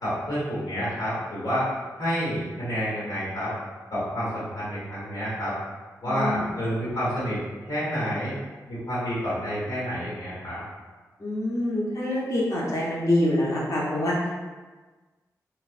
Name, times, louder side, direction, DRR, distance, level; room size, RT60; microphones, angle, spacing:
voice 1, 0.0-1.7 2.0-3.5 3.9-5.5 6.0-7.4 7.7-8.3 8.7-10.6, equal, 75° left, -8 dB, 1.2 m, -29 dB
voice 2, 6.1-6.4 11.2-14.3, left 1 dB, 50° left, -6 dB, 0.9 m, -25 dB
3.3 x 2.1 x 2.5 m, 1.3 s
cardioid pair, 60°, 7 cm